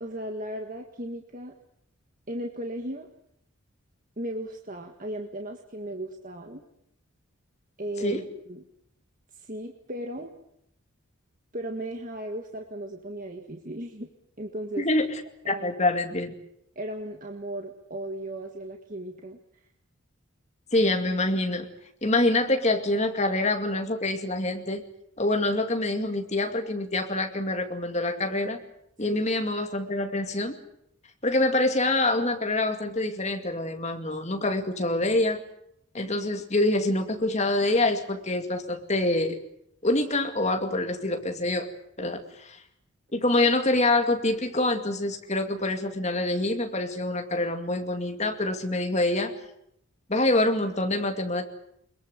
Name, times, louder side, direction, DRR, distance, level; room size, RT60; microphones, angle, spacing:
voice 1, 0.0-1.6 2.3-3.1 4.2-6.6 7.8-8.6 9.3-10.3 11.5-14.1 14.4-14.9 15.5-15.7 16.8-19.4 29.1-29.2 42.0-42.2, right 1 dB, 40° right, 3 dB, 1.7 m, -36 dB
voice 2, 14.8-15.1 15.5-16.3 20.7-21.6 22.0-24.8 25.2-28.6 29.0-30.5 31.2-35.4 35.9-39.4 39.8-41.7 42.0-42.6 43.1-49.3 50.1-51.4, left 2 dB, 30° left, 5 dB, 2.3 m, -26 dB
22.5 x 22.0 x 8.2 m, 0.74 s
head